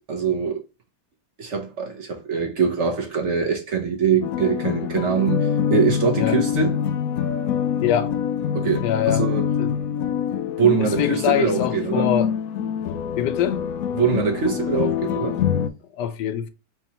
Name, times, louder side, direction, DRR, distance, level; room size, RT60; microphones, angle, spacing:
voice 1, 0.1-0.6 1.4-6.8 8.5-9.4 10.6-12.1 14.0-15.4, right 6 dB, 55° right, 0.9 m, -23 dB
sound 1, 4.2-15.7, left 8 dB, 70° left, 0.9 m, -25 dB
voice 2, 7.8-8.2 8.8-9.3 9.6-9.7 10.8-12.3 13.2-13.6 15.9-16.5, left 10 dB, 90° left, 1.2 m, -24 dB
4.6 x 3.0 x 2.8 m
omnidirectional pair, 1.8 m